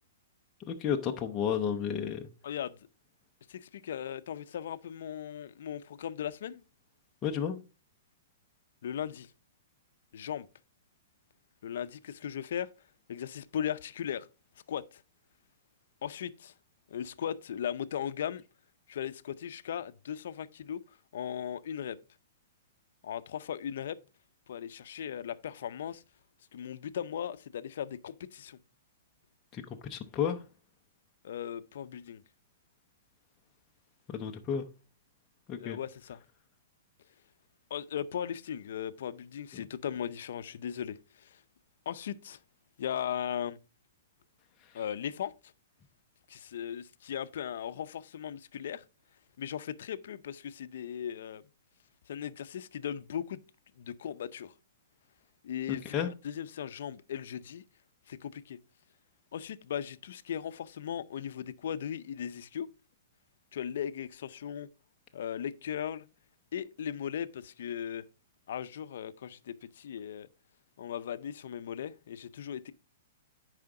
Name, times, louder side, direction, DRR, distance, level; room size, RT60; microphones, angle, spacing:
voice 1, 0.7-2.3 7.2-7.6 29.5-30.4 34.1-34.6 35.5-35.8 39.5-39.6 55.9-56.1, left 8 dB, 20° left, 0.6 m, -32 dB
voice 2, 2.4-2.8 3.5-6.6 8.8-9.3 10.1-10.5 11.6-12.7 13.1-14.3 14.7-15.0 16.0-16.5 16.9-18.4 18.9-20.8 21.1-22.0 23.0-24.0 24.5-26.0 26.5-28.6 31.2-32.2 35.6-36.2 37.7-41.4 41.9-42.4 42.8-43.6 44.7-45.3 46.3-48.8 49.4-51.4 52.1-53.4 53.8-54.5 55.4-57.6 58.1-58.6 59.3-62.7 63.5-64.7 65.1-66.1 66.5-68.0 68.5-70.3 70.8-72.7, left 9 dB, 60° left, 0.5 m, -37 dB
9.5 x 4.9 x 3.8 m
hypercardioid pair, 170°, 0 cm